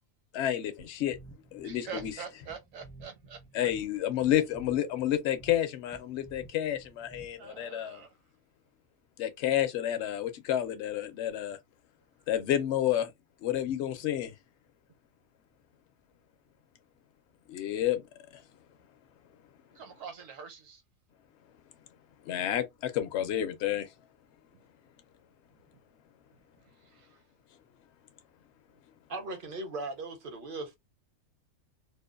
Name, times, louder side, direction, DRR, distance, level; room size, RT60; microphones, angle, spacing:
voice 1, 0.3-1.2 1.5-2.1 3.5-8.0 9.2-11.6 12.3-13.1 13.4-14.3 17.5-18.0 18.3-18.4 22.2-23.9, left 11 dB, 65° left, 0.8 m, -30 dB
sound 1, 0.8-7.6, right 3 dB, 10° left, 0.4 m, -53 dB
voice 2, 1.6-3.4 7.4-8.1 19.7-20.8 26.8-27.2, right 6 dB, 80° right, 1.2 m, -44 dB
voice 3, 29.1-30.8, right 2 dB, 60° right, 0.6 m, -38 dB
2.6 x 2.1 x 2.3 m
omnidirectional pair, 1.4 m